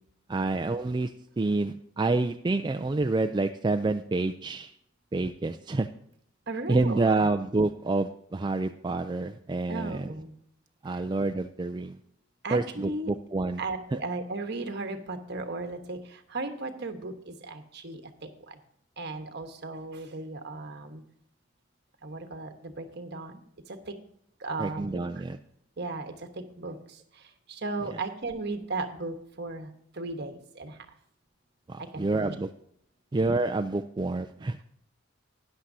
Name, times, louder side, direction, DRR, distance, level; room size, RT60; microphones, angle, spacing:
voice 1, 0.3-4.7 5.1-5.9 6.7-10.1 10.8-12.0 12.5-13.6 13.9-14.0 24.6-25.4 27.8-28.0 31.7-32.5 33.1-34.6, right 3 dB, 20° right, 6 dB, 0.3 m, -28 dB
voice 2, 6.5-7.2 9.7-10.3 12.4-13.1 13.6-18.6 19.0-21.0 22.0-23.4 23.9-24.0 24.4-25.0 25.8-26.8 27.5-29.7 30.0-30.8 31.8-32.3, right 3 dB, 55° right, 6 dB, 1.2 m, -36 dB
13.5 x 9.9 x 2.7 m, 0.69 s
head